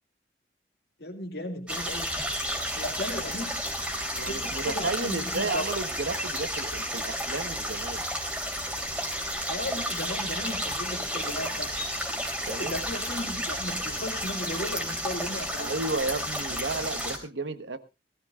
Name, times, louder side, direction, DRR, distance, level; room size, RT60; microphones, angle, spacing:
voice 1, 1.0-2.1 2.8-3.5 4.2-5.6 9.5-11.8 12.5-15.7, left 1 dB, 60° left, 2.3 m, -35 dB
sound 1, 1.7-17.2, equal, 5° right, 3.2 m, -32 dB
voice 2, 4.1-8.0 12.5-12.7 15.6-17.8, right 3 dB, 80° right, 1.3 m, -33 dB
19.5 x 14.5 x 2.4 m
head